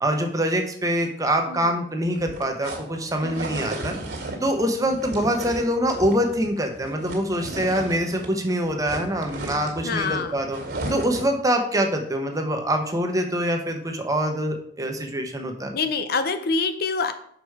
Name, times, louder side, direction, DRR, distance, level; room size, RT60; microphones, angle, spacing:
voice 1, 0.0-3.9 4.4-10.6 10.9-15.7, equal, 20° right, 4 dB, 1.0 m, -24 dB
voice 2, 1.5-1.8 3.2-3.7 9.8-10.4 10.8-11.3 15.7-17.1, left 4 dB, 60° left, 9 dB, 0.6 m, -27 dB
sound 1, 2.0-8.4 8.6-11.4, right 1 dB, 60° right, 2.0 m, -35 dB
6.5 x 5.1 x 4.7 m, 0.67 s
head